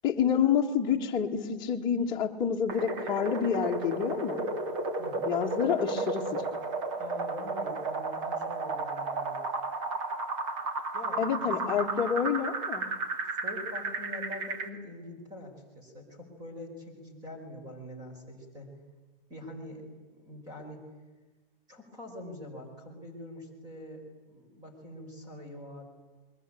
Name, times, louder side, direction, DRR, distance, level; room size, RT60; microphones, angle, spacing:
voice 1, 0.0-4.5 5.2-6.6 11.2-12.8, left 7 dB, 15° left, -1 dB, 2.2 m, -28 dB
sound 1, 2.7-14.7, right 3 dB, 30° right, 2.7 m, -33 dB
voice 2, 7.0-9.4 10.9-12.0 13.3-18.7 19.3-20.8 21.7-25.8, left 1 dB, 15° right, 3 dB, 4.8 m, -44 dB
29.0 x 22.5 x 8.8 m, 1.2 s
hypercardioid pair, 170°, 29 cm